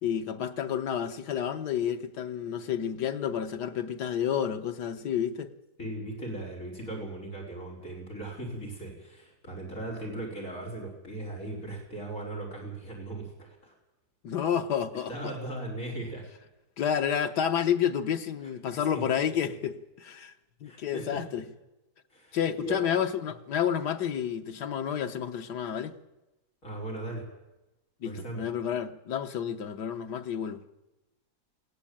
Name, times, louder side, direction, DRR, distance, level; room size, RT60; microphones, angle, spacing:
voice 1, 0.0-5.5 14.2-15.1 16.8-20.3 20.6-21.5 22.3-25.9 28.0-30.6, left 8 dB, 90° left, 1.7 m, -30 dB
voice 2, 5.8-13.7 15.1-16.3 18.7-19.0 20.6-21.4 22.1-22.8 26.6-27.3 28.0-28.4, right 2 dB, 55° left, 5.6 m, -38 dB
20.0 x 16.0 x 8.8 m
omnidirectional pair, 1.7 m